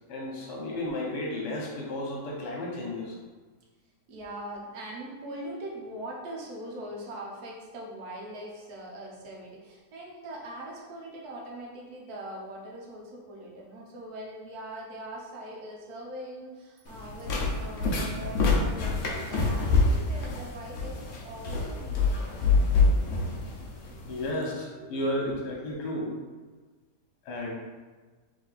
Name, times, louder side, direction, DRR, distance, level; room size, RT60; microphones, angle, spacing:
voice 1, 0.1-3.1 24.0-26.1 27.2-27.5, left 1 dB, 75° left, -3 dB, 1.5 m, -33 dB
voice 2, 4.1-22.6 23.9-24.0 24.8-24.9, right 1 dB, 70° right, -3 dB, 1.3 m, -41 dB
sound 1, 16.9-24.3, left 3 dB, 60° left, 0.9 m, -26 dB
3.4 x 3.3 x 4.0 m, 1.3 s
omnidirectional pair, 1.8 m